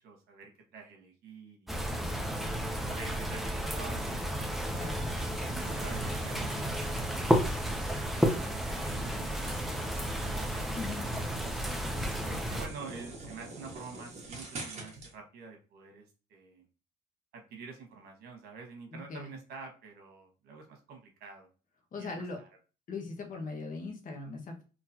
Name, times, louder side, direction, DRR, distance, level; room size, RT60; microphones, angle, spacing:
voice 1, 0.0-2.4 2.8-4.3 4.9-6.8 8.7-11.5 12.3-16.7 17.3-21.5 22.0-22.5, right 4 dB, 70° right, 3 dB, 1.4 m, -48 dB
sound 1, 1.7-12.7, equal, ahead, 0.6 m, -32 dB
sound 2, 4.7-15.1, right 2 dB, 40° right, 1.4 m, -47 dB
voice 2, 10.7-11.1 18.9-19.3 21.9-22.4 22.9-24.6, left 3 dB, 50° left, 2 dB, 1.2 m, -40 dB
3.9 x 3.0 x 2.8 m, 0.34 s
cardioid pair, 110°, 17 cm